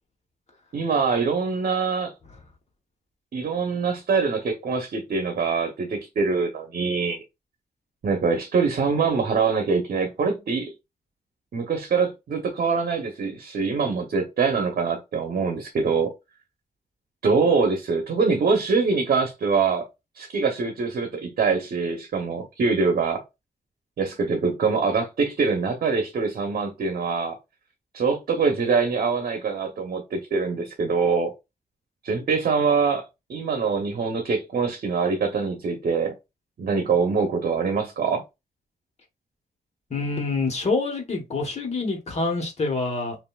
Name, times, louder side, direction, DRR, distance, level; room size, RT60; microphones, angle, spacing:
voice 1, 0.7-2.1 3.3-7.2 8.0-10.7 11.5-16.1 17.2-19.9 20.2-23.2 24.0-27.4 27.9-31.3 32.0-33.0 33.3-36.1 36.6-38.2, right 5 dB, 70° right, 0.9 m, -24 dB
voice 2, 39.9-43.2, left 3 dB, 45° left, 1.3 m, -26 dB
5.6 x 2.6 x 2.3 m
wide cardioid pair, 135°, 15 cm